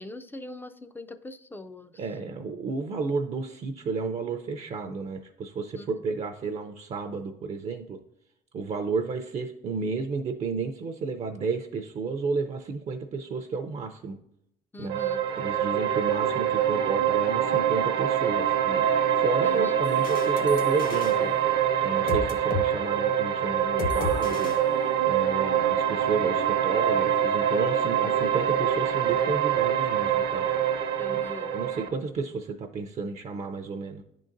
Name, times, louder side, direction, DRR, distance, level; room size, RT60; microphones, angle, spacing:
voice 1, 0.0-2.0 5.8-5.9 14.7-15.2 19.4-19.9 31.0-31.5, left 2 dB, 10° left, 10 dB, 0.4 m, -42 dB
voice 2, 2.0-8.0 8.5-14.2 14.8-15.0 15.4-18.9 19.1-21.3 21.8-24.5 25.1-30.4 31.1-34.0, right 4 dB, 40° right, 6 dB, 0.5 m, -32 dB
sound 1, 14.9-31.9, right 9 dB, 70° right, 0.8 m, -25 dB
sound 2, 19.8-22.7 22.9-23.2 23.8-25.3, left 4 dB, 55° left, 0.9 m, -35 dB
10.0 x 3.8 x 2.6 m, 0.81 s
cardioid pair, 110°, 17 cm